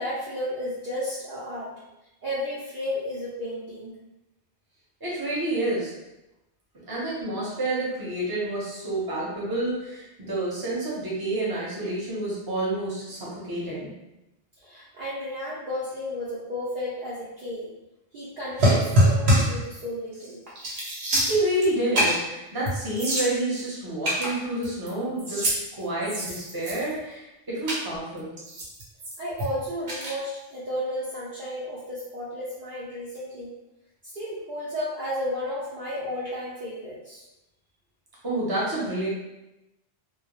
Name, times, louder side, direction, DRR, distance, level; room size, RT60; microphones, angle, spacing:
voice 1, 0.0-1.7 2.2-3.9 14.6-17.7 18.1-20.5 29.2-33.5 34.0-37.2, left 1 dB, 55° right, -8 dB, 0.6 m, -33 dB
voice 2, 5.0-5.9 6.9-13.9 21.1-25.4 25.8-28.3 38.2-39.1, right 1 dB, 25° right, -7 dB, 0.7 m, -29 dB
sound 1, 18.6-19.6 20.1-20.3 20.6-21.7 21.9-22.3 22.7-22.8 23.0-23.6 24.0-24.9 25.2-25.6 26.0-27.0 27.7-27.8 28.4-29.5 29.9-30.1, equal, 75° right, 1.0 m, -24 dB
2.1 x 2.1 x 2.9 m, 0.94 s
omnidirectional pair, 1.1 m